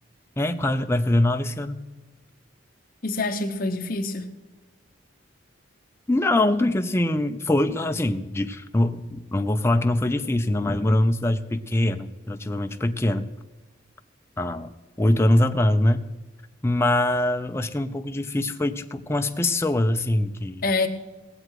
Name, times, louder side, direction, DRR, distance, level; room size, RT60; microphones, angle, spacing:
voice 1, 0.4-1.9 6.1-13.3 14.4-14.7 15.0-16.1 16.6-20.6, left 1 dB, 15° left, 0.5 m, -23 dB
voice 2, 3.0-4.3 20.6-20.9, left 3 dB, 45° left, 1.0 m, -26 dB
19.5 x 7.7 x 4.8 m
head